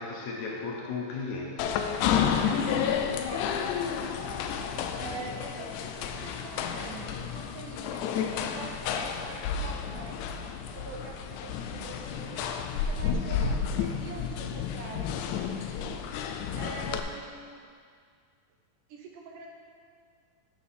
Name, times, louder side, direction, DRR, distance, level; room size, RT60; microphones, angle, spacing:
voice 1, 0.0-1.8 2.2-3.3 4.8-5.3, left 3 dB, 70° left, -2 dB, 1.9 m, -37 dB
sound 1, 1.6-17.0, left 7 dB, 85° left, 1.7 m, -31 dB
voice 2, 2.4-15.1 15.4-15.9 16.6-17.7 18.9-19.5, right 4 dB, 75° right, 1 dB, 2.1 m, -45 dB
8.7 x 6.9 x 4.2 m, 2.1 s
omnidirectional pair, 4.0 m